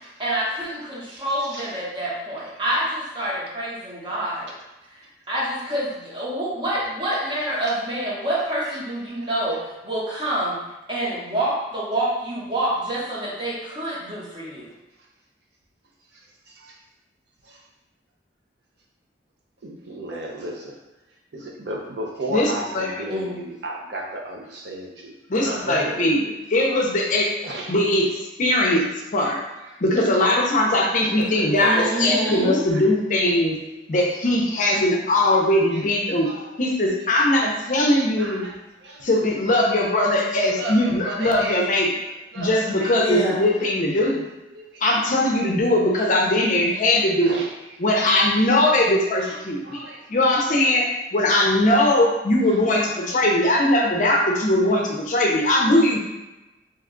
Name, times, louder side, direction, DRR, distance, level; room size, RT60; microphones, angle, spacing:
voice 1, 0.2-4.5 5.3-9.6 9.8-10.6 10.9-14.7 23.1-23.4 31.5-32.6 43.0-43.5, right 1 dB, 25° right, -6 dB, 0.9 m, -27 dB
voice 2, 1.1-1.7 19.6-20.8 21.3-25.1 25.4-26.3 27.4-27.7 29.6-29.8 31.0-32.1 32.7-32.9 35.7-35.8 36.2-36.5 38.2-39.1 40.2-40.3 40.6-41.6 42.3-43.0 43.6-43.7 44.0-44.1 44.5-44.8 45.9-46.1 47.2-47.5 47.9-48.1 49.0-50.0 51.3-51.5 52.9-53.1 55.2-55.3, right 1 dB, 65° right, -1 dB, 0.6 m, -34 dB
voice 3, 22.3-22.9 25.3-26.2 26.5-27.3 27.7-28.1 28.4-28.9 29.1-29.4 29.8-33.6 33.9-36.3 36.6-38.5 39.0-41.9 42.4-44.2 44.8-47.4 47.8-49.8 50.1-50.8 51.1-56.0, left 1 dB, 45° left, -1 dB, 0.5 m, -20 dB
2.9 x 2.3 x 3.7 m, 1.0 s
head